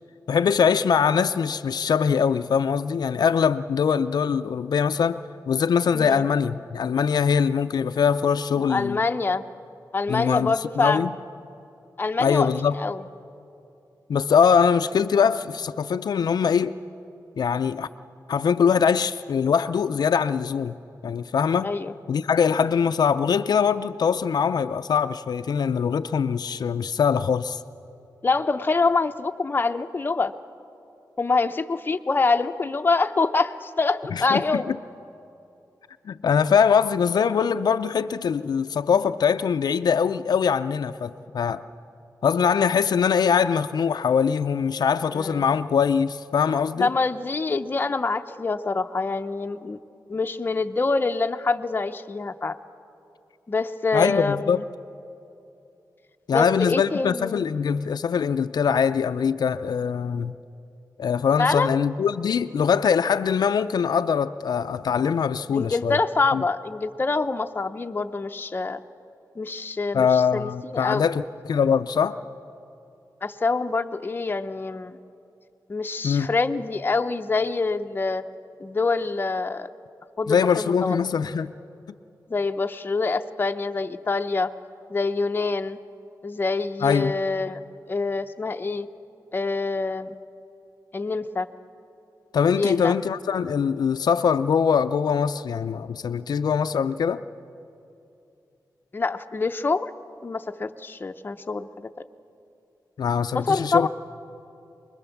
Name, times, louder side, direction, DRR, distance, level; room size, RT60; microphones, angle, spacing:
voice 1, 0.3-9.0 10.1-11.1 12.2-12.8 14.1-16.8 17.4-17.9 18.3-20.7 21.0-21.7 22.1-27.6 34.1-34.6 36.1-41.6 42.2-46.9 53.9-54.6 56.3-60.3 61.0-66.0 66.3-66.4 69.9-72.2 76.0-76.3 80.3-81.5 86.8-87.1 92.3-97.2 103.0-103.9, left 7 dB, 75° left, 11 dB, 0.4 m, -22 dB
voice 2, 5.9-6.3 8.6-9.4 9.9-11.1 12.0-13.0 21.6-21.9 28.2-30.3 31.2-34.7 45.1-45.5 46.8-49.8 50.1-52.6 53.5-54.6 56.3-57.5 61.4-61.8 65.5-68.8 69.4-71.1 73.2-75.0 75.7-78.2 78.6-79.7 80.2-81.0 82.3-84.5 84.9-85.8 86.2-87.6 87.9-88.9 89.3-90.1 90.9-91.5 92.5-93.0 98.9-99.9 100.2-101.9 103.4-103.9, left 3 dB, 30° left, 8 dB, 0.6 m, -25 dB
24.0 x 21.0 x 7.1 m, 2.7 s
wide cardioid pair, 150°, 7 cm